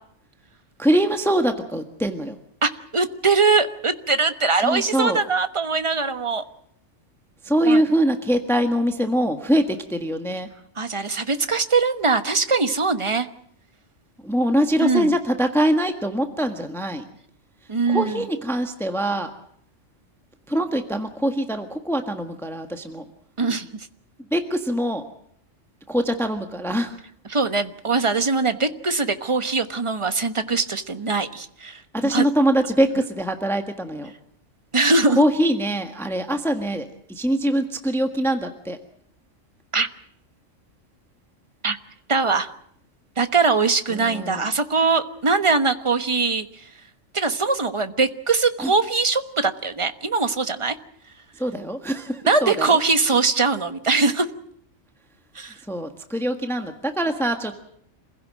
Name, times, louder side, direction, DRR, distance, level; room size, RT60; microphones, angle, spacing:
voice 1, 0.8-2.4 4.6-5.2 7.4-10.5 14.2-17.0 17.9-19.3 20.5-23.0 24.3-25.0 25.9-27.0 31.9-34.1 35.2-38.8 43.9-44.4 48.6-48.7 51.4-52.8 55.7-57.6, right 1 dB, ahead, 6 dB, 1.4 m, -23 dB
voice 2, 2.6-6.4 7.7-7.8 10.8-13.3 14.8-15.1 17.7-18.3 23.4-23.9 27.3-32.3 34.7-35.2 39.7-39.9 41.6-41.8 42.1-42.5 43.2-46.6 47.1-50.7 52.3-54.3 55.3-55.6, right 4 dB, 25° right, 10 dB, 1.2 m, -22 dB
27.0 x 16.0 x 7.6 m, 0.68 s
omnidirectional pair, 1.3 m